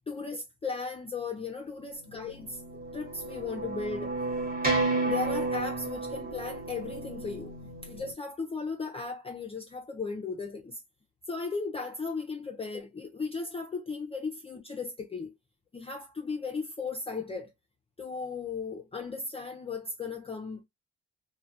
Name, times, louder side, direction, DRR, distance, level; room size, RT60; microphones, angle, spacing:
voice 1, 0.0-2.6 2.9-4.2 5.0-10.8 11.3-15.3 15.7-17.5 18.0-20.6, left 4 dB, 20° left, 0.4 m, -36 dB
sound 1, 2.3-8.1, right 2 dB, 30° right, 1.1 m, -32 dB
2.2 x 2.1 x 2.6 m
cardioid pair, 90°, 30 cm